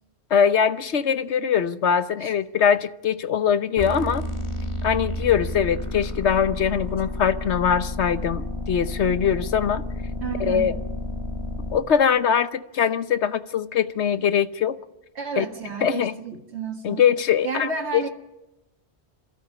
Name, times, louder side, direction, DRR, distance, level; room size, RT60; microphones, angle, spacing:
voice 1, 0.3-4.3 4.8-9.8 10.4-10.8 11.7-14.8 15.4-15.5 15.8-16.1 16.8-18.0, left 7 dB, 80° left, 1.2 m, -22 dB
sound 1, 3.8-11.8, left 1 dB, 25° left, 1.7 m, -31 dB
voice 2, 10.2-10.7 15.2-17.1 17.4-18.1, right 5 dB, 75° right, 2.0 m, -31 dB
27.5 x 13.0 x 8.5 m
omnidirectional pair, 1.1 m